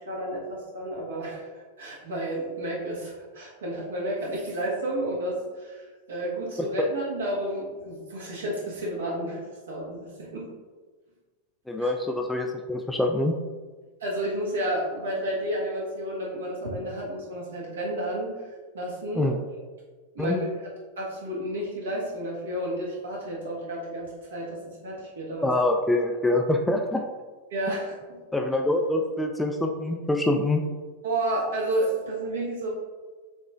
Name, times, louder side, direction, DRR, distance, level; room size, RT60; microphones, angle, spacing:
voice 1, 0.1-10.5 11.8-11.9 14.0-18.5 18.7-19.3 20.1-20.5 21.0-25.5 27.5-28.2 31.0-32.7, right 1 dB, 65° right, -4 dB, 1.4 m, -31 dB
voice 2, 11.7-13.3 19.1-19.3 20.2-20.5 25.4-27.0 28.3-30.6, left 2 dB, 5° left, 3 dB, 0.3 m, -25 dB
7.3 x 3.0 x 2.4 m, 1.4 s
figure-of-eight pair, 90°, 0 cm